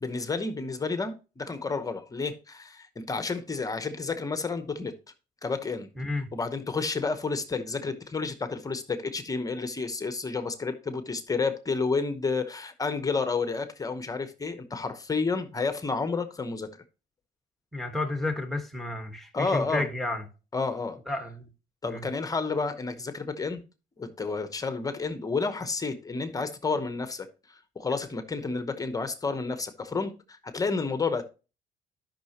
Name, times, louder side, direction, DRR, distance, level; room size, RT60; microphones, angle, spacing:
voice 1, 0.0-4.9 5.4-5.9 6.3-16.7 19.3-19.9 20.5-21.0 21.8-23.6 24.0-31.2, left 4 dB, 20° left, 0.9 m, -30 dB
voice 2, 6.0-6.3 17.7-20.2 21.1-21.5 21.8-22.1, left 2 dB, ahead, 1.4 m, -31 dB
12.0 x 5.7 x 2.9 m
cardioid pair, 110°, 17 cm